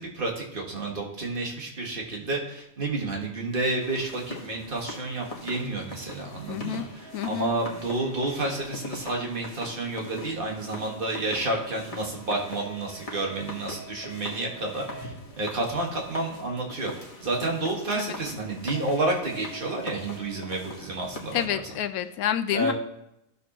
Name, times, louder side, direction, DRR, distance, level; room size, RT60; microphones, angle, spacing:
voice 1, 0.0-16.9 17.2-21.4 22.5-22.7, right 2 dB, 40° right, 0 dB, 1.8 m, -30 dB
sound 1, 3.8-21.5, left 1 dB, 25° left, 1.5 m, -42 dB
voice 2, 6.5-6.9 7.1-7.5 17.9-18.1 21.3-22.7, left 10 dB, 90° left, 10 dB, 1.1 m, -28 dB
14.5 x 6.8 x 3.0 m, 0.82 s
omnidirectional pair, 1.5 m